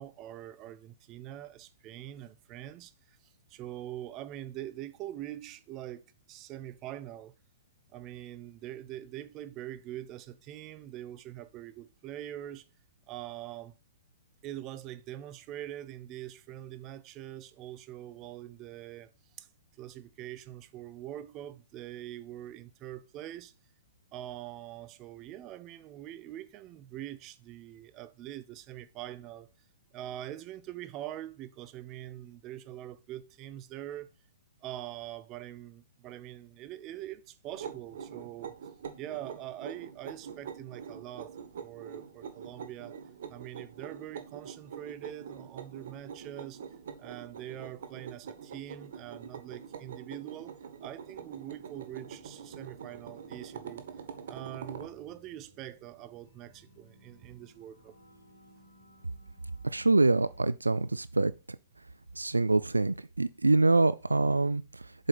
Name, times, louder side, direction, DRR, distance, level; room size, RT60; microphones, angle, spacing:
voice 1, 0.0-3.2 3.5-6.0 6.3-7.3 7.9-12.6 13.1-13.7 14.4-19.1 19.4-19.5 19.8-23.5 24.1-29.5 29.9-34.1 34.6-38.5 39.0-41.4 41.6-42.9 43.3-46.6 47.0-50.5 50.8-53.8 54.3-57.9, right 13 dB, 30° right, 0.6 m, -43 dB
sound 1, 37.5-54.9, right 7 dB, 55° right, 1.0 m, -45 dB
sound 2, 52.0-60.4, equal, 70° left, 2.7 m, -60 dB
voice 2, 59.6-61.3 62.2-64.9, right 3 dB, 80° right, 0.3 m, -25 dB
7.4 x 5.1 x 4.1 m
figure-of-eight pair, 115°, 0 cm